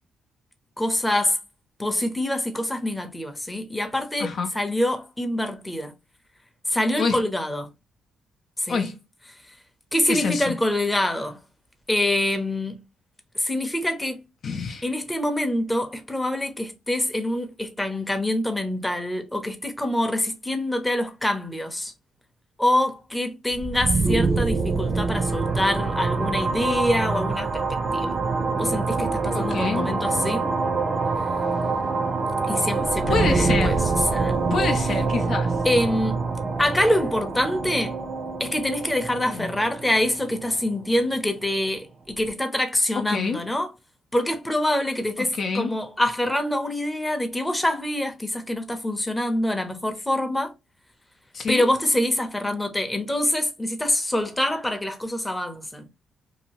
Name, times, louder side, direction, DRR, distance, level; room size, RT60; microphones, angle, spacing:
voice 1, 0.8-1.4 1.8-4.3 4.5-5.9 6.7-7.7 8.6-8.9 9.9-11.4 11.9-12.8 13.4-14.2 14.8-21.9 22.6-27.6 27.9-28.1 28.6-30.5 32.5-33.8 34.1-34.4 35.6-36.2 36.6-37.9 38.4-43.7 44.1-50.5 51.5-55.9, left 1 dB, 10° left, 0.7 m, -25 dB
voice 2, 4.2-4.5 7.0-7.2 8.7-9.0 10.1-10.4 14.4-14.9 29.3-29.9 33.1-33.8 34.5-35.6 39.3-39.5 43.1-43.4 45.2-45.7 51.3-51.6, left 4 dB, 55° left, 0.5 m, -27 dB
sound 1, 23.5-41.2, right 4 dB, 35° right, 0.6 m, -25 dB
2.8 x 2.4 x 2.8 m
cardioid pair, 90°, 0 cm